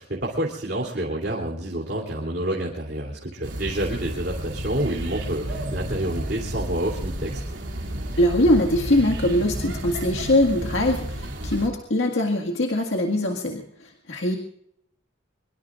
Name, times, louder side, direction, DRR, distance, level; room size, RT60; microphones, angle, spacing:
voice 1, 0.0-7.4, right 1 dB, 55° right, -2 dB, 3.1 m, -28 dB
sound 1, 3.4-11.7, right 1 dB, 75° right, 3.1 m, -32 dB
voice 2, 8.2-14.4, left 1 dB, 85° left, 1 dB, 1.9 m, -22 dB
24.5 x 23.0 x 2.5 m, 0.72 s
head